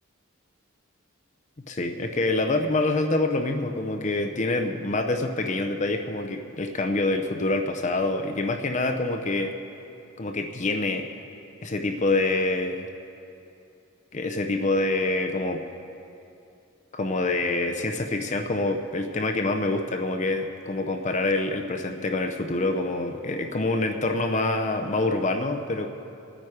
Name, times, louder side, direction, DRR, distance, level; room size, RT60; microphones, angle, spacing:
voice 1, 1.7-9.5 10.2-11.1 11.6-12.9 14.1-15.6 16.9-25.9, left 2 dB, 35° left, 5 dB, 0.6 m, -26 dB
19.5 x 8.9 x 4.9 m, 2.7 s
head